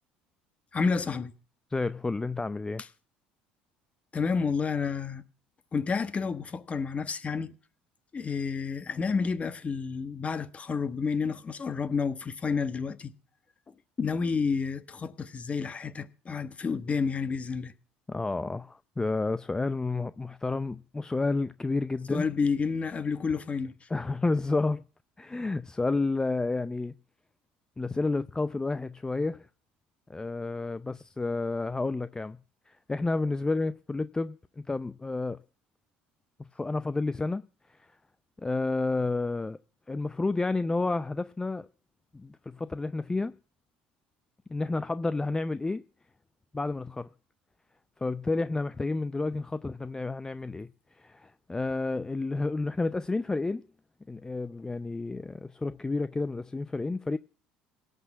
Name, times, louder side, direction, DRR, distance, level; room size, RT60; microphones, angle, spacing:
voice 1, 0.7-1.3 4.1-5.2 5.7-7.5 8.1-13.1 14.0-17.7 22.1-23.9, left 5 dB, 30° left, 1.2 m, -30 dB
voice 2, 1.7-2.8 18.1-22.3 23.9-24.8 25.2-26.9 27.8-29.5 30.1-32.4 32.7-35.4 36.5-37.4 38.4-39.6 39.9-41.7 42.1-43.4 44.5-45.8 46.5-47.1 48.0-50.7 50.9-53.7 54.1-57.2, left 3 dB, 15° left, 0.5 m, -30 dB
17.5 x 6.2 x 7.3 m
hypercardioid pair, 65°, 4 cm